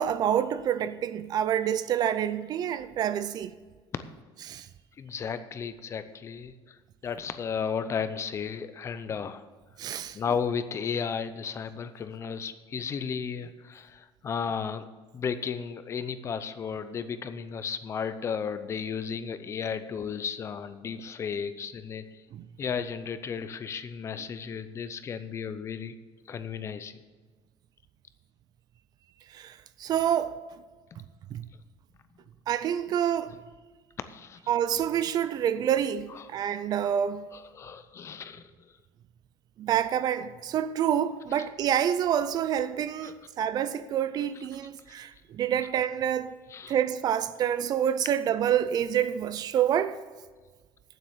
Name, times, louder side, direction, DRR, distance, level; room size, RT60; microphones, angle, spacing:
voice 1, 0.0-3.5 4.5-4.7 9.8-10.2 22.3-22.4 29.3-30.3 31.3-31.5 32.5-33.4 34.5-37.3 39.6-46.3 46.7-50.0, right 9 dB, 40° right, 0.5 m, -27 dB
voice 2, 5.0-6.8 7.0-9.4 10.1-14.8 15.1-22.0 22.6-25.9 26.3-27.0 34.1-34.4 37.3-38.4 43.0-43.1 46.5-46.7, left 6 dB, 25° left, 0.6 m, -34 dB
9.2 x 7.7 x 7.2 m
cardioid pair, 170°, 10 cm